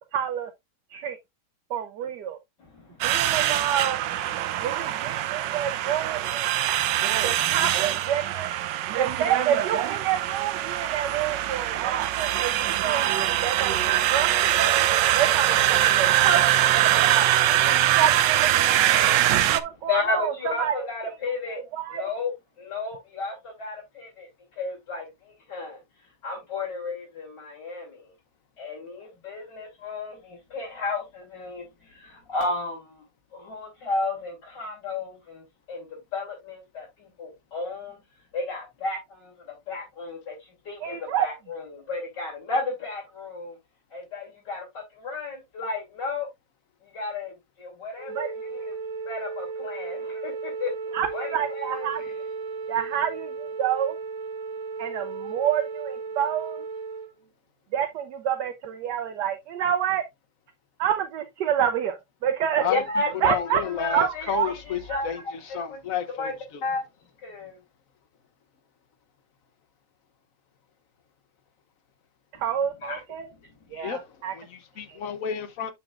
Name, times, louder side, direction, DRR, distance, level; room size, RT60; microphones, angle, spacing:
voice 1, 0.1-0.5 0.9-1.2 1.7-2.4 3.0-4.0 4.6-7.0 7.2-8.5 9.0-13.1 13.4-14.9 15.2-17.1 17.4-20.3 20.6-20.7 21.7-22.1 40.8-41.3 48.1-48.3 50.9-52.0 52.7-54.0 54.8-56.6 57.7-60.0 60.8-62.0 62.2-62.6 63.2-63.6 63.9-64.5 64.9-65.0 72.4-73.3 73.7-74.3 74.9-75.0, right 9 dB, 75° right, 1.4 m, -28 dB
voice 2, 2.6-3.1 19.9-21.6 21.9-22.3 22.6-25.8 26.2-28.1 28.6-33.0 33.3-38.0 38.3-43.6 43.9-46.3 46.8-48.8 49.1-51.9 62.7-63.3 63.6-65.2 65.5-65.8 66.2-66.3 66.6-66.8 67.2-67.6 72.3-72.4 72.8-73.5, left 3 dB, 70° left, 3.6 m, -33 dB
sound 1, 3.0-19.6, right 12 dB, 90° right, 1.3 m, -23 dB
Wind instrument woodwind instrument, 47.9-57.1, right 4 dB, 45° right, 1.7 m, -35 dB
voice 3, 63.2-66.6 73.7-75.7, left 8 dB, 55° left, 1.2 m, -32 dB
8.9 x 6.1 x 2.5 m
omnidirectional pair, 1.9 m